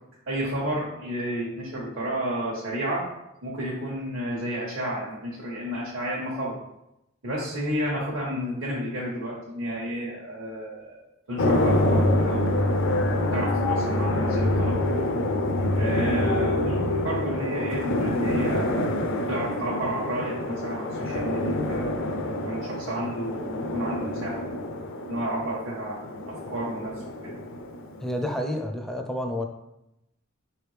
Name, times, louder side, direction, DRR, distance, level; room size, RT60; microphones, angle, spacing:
voice 1, 0.3-3.0 3.4-6.6 7.2-11.0 11.3-12.6 13.3-14.8 15.8-18.9 19.3-22.0 22.4-24.4 25.1-26.9 27.2-27.4, right 1 dB, 70° right, -6 dB, 1.0 m, -31 dB
sound 1, 11.4-28.2, left 1 dB, 65° left, 0.5 m, -26 dB
voice 2, 28.0-29.5, left 1 dB, ahead, 3 dB, 0.4 m, -29 dB
4.6 x 3.3 x 3.2 m, 0.87 s
head